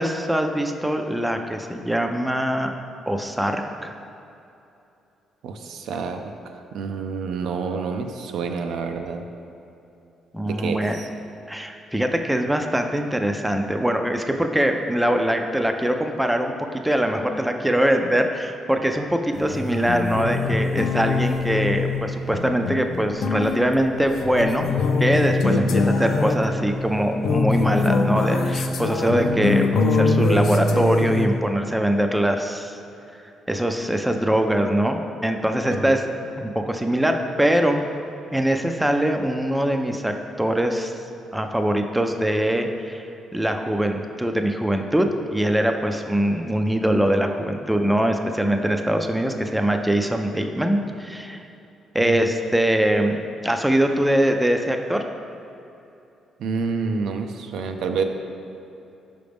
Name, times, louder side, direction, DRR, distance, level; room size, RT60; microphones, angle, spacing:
voice 1, 0.0-2.7 3.1-3.9 10.3-11.0 11.5-16.5 16.8-24.7 25.0-32.8 33.5-36.0 36.4-37.8 38.3-40.9 41.3-43.0 43.3-51.5 51.9-53.2 53.4-55.0, right 1 dB, 5° right, 4 dB, 0.4 m, -22 dB
voice 2, 5.4-6.2 6.7-9.3 10.4-11.1 25.5-25.8 35.7-35.9 52.0-52.2 56.4-58.0, right 5 dB, 80° right, 5 dB, 0.4 m, -28 dB
sound 1, 19.3-31.3, left 3 dB, 70° left, 0.4 m, -23 dB
5.7 x 5.1 x 3.4 m, 2.8 s
cardioid pair, 90°, 0 cm